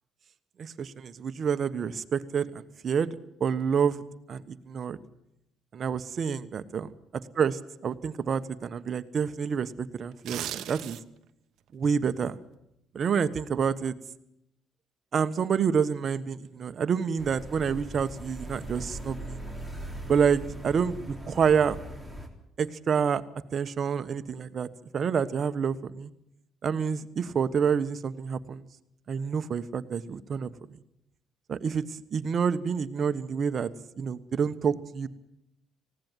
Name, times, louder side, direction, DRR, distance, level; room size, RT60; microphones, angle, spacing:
voice 1, 0.6-3.1 3.4-4.0 4.3-5.0 5.7-6.9 7.3-11.0 11.7-12.4 12.9-13.9 15.1-19.4 20.1-21.0 21.3-21.8 22.6-23.2 23.5-24.7 24.9-26.1 26.6-28.6 29.1-30.8 31.5-33.7 34.0-35.1, right 6 dB, 50° right, 11 dB, 1.3 m, -28 dB
sound 1, 10.1-11.3 11.7-11.8, right 12 dB, 75° right, 0.9 m, -37 dB
sound 2, 17.2-22.3, right 1 dB, 10° left, 3.7 m, -40 dB
19.0 x 16.5 x 9.2 m, 0.80 s
cardioid pair, 90°, 0 cm